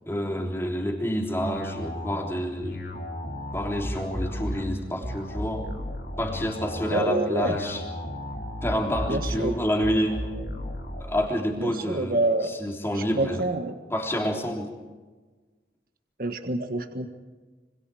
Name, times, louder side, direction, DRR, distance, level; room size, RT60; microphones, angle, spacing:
voice 1, 0.0-2.8 3.5-5.7 6.2-7.8 8.6-10.2 11.0-12.2 12.4-13.4 13.9-14.7, equal, 15° left, 1 dB, 3.5 m, -28 dB
sound 1, 1.4-11.0, left 1 dB, 60° left, 5.5 m, -34 dB
voice 2, 6.9-7.6 9.1-9.6 11.6-12.5 13.2-13.8 16.2-17.1, right 2 dB, 55° right, 6 dB, 1.6 m, -27 dB
26.0 x 26.0 x 4.9 m, 1.3 s
head